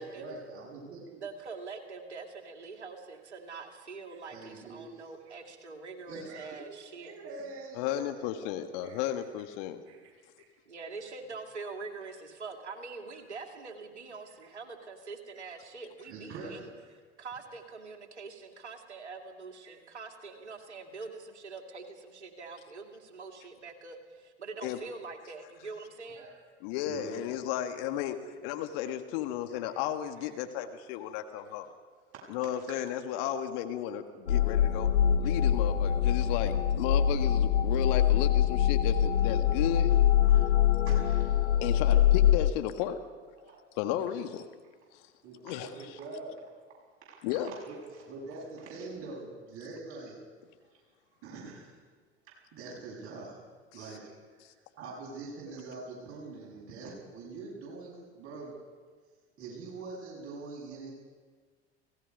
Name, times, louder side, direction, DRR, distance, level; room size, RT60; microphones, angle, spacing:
voice 1, 0.0-1.2 4.3-5.4 6.1-6.7 6.9-8.3 8.8-9.1 9.8-10.1 16.0-16.6 19.6-19.8 26.1-26.4 26.8-27.2 28.5-28.6 29.7-29.8 30.2-30.7 31.3-31.5 32.1-32.2 35.2-35.3 40.3-40.4 40.8-41.4 43.3-43.6 43.9-44.0 45.2-46.5 46.8-50.2 51.2-51.8 52.5-54.2 54.5-58.6 59.4-60.9, right 3 dB, 40° right, -4 dB, 6.7 m, -44 dB
voice 2, 1.2-7.1 10.7-16.7 17.2-26.3, right 4 dB, 80° right, 4 dB, 2.6 m, -44 dB
voice 3, 7.8-9.8 24.6-24.8 26.6-28.2 28.4-31.7 32.3-34.9 35.2-39.9 41.6-43.0 43.8-44.4 44.9-45.0 45.4-45.7 47.2-47.5 54.4-54.5, left 11 dB, 55° left, 7 dB, 1.7 m, -34 dB
sound 1, 34.3-42.5, left 10 dB, 85° left, 0.7 m, -24 dB
29.5 x 17.5 x 5.4 m, 1.5 s
figure-of-eight pair, 75°, 34 cm